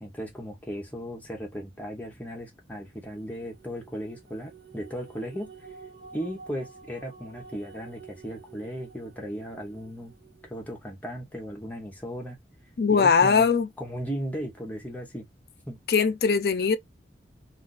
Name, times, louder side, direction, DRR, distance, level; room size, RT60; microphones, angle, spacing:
voice 1, 0.0-5.5 6.1-10.1 10.4-12.4 12.9-15.3 15.7-15.8, equal, 10° left, 0.8 m, -36 dB
sound 1, 2.8-10.7, right 6 dB, 60° right, 1.0 m, -50 dB
voice 2, 12.8-13.7 15.9-16.8, left 5 dB, 60° left, 0.4 m, -21 dB
2.5 x 2.5 x 3.9 m
head